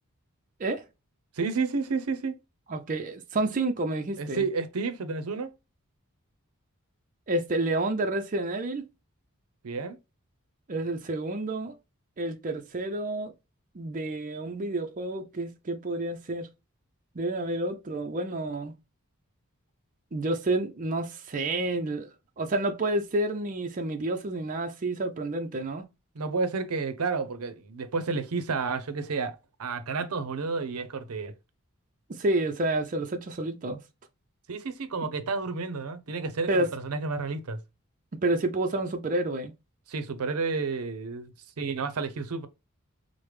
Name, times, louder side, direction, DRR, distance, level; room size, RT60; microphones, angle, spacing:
voice 1, 1.4-2.4 4.2-5.5 9.6-10.0 26.2-31.3 34.5-37.6 39.9-42.5, right 4 dB, 85° right, 0.6 m, -31 dB
voice 2, 2.7-4.5 7.3-8.9 10.7-11.8 12.2-13.3 13.7-16.5 17.1-18.7 20.1-25.8 32.1-33.8 36.5-36.7 38.2-39.5, right 2 dB, 35° right, 0.5 m, -29 dB
4.8 x 2.1 x 3.1 m
head